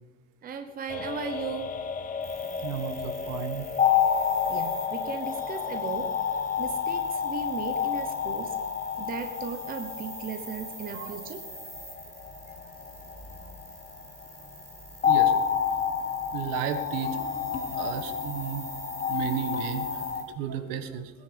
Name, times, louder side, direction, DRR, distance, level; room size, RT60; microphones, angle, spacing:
voice 1, 0.4-1.7 4.5-6.2 6.6-8.5 9.0-11.4, right 6 dB, 25° right, 7 dB, 1.0 m, -36 dB
sound 1, 0.9-14.3 15.0-20.2, left 8 dB, 20° left, 1.0 m, -29 dB
sound 2, 2.2-20.2, right 1 dB, 10° right, 4.9 m, -45 dB
voice 2, 2.6-3.7 10.9-11.1 15.0-15.3 16.3-17.2 17.7-18.6 19.1-21.1, right 8 dB, 65° right, 9 dB, 1.6 m, -33 dB
19.5 x 10.5 x 5.3 m, 1.1 s
cardioid pair, 150°, 36 cm